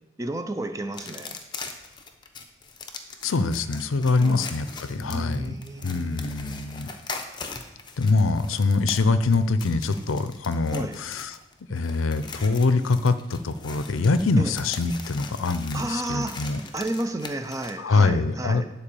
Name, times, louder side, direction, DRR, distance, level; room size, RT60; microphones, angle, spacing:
voice 1, 0.2-1.4 4.2-4.5 5.0-6.7 10.7-11.0 14.4-14.5 15.7-16.4 16.7-18.7, right 1 dB, 15° right, 8 dB, 0.5 m, -32 dB
sound 1, 0.9-17.7, left 4 dB, 20° left, 0.7 m, -41 dB
voice 2, 3.2-5.5 5.8-6.9 8.0-11.4 11.7-16.6 17.8-18.6, left 3 dB, 90° left, 13 dB, 0.6 m, -24 dB
10.0 x 4.5 x 6.9 m, 1.1 s
head